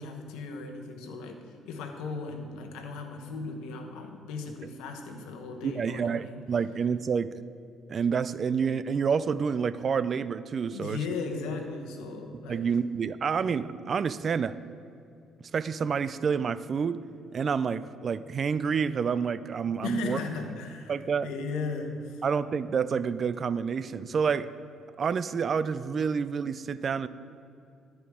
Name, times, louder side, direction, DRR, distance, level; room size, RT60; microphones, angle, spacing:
voice 1, 0.0-6.4 10.7-12.7 19.8-22.2, left 4 dB, 85° left, 3 dB, 1.0 m, -37 dB
voice 2, 5.6-7.3 7.9-11.0 12.5-14.6 15.5-17.0 17.3-20.2 20.9-21.3 22.2-24.5 25.0-27.1, right 6 dB, 45° right, 15 dB, 0.3 m, -28 dB
14.0 x 4.9 x 3.6 m, 2.6 s
cardioid pair, 85°, 0 cm